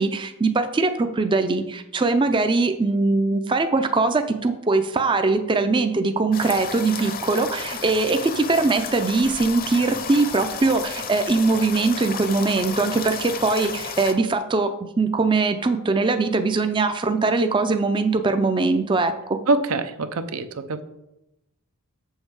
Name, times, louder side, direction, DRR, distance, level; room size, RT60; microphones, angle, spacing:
voice 1, 0.0-19.4, right 3 dB, 20° right, 8 dB, 0.4 m, -21 dB
sound 1, 6.3-14.1, left 6 dB, 40° left, 0.7 m, -33 dB
voice 2, 19.5-20.8, right 3 dB, 85° right, 10 dB, 0.7 m, -24 dB
7.2 x 6.4 x 4.7 m, 0.88 s
head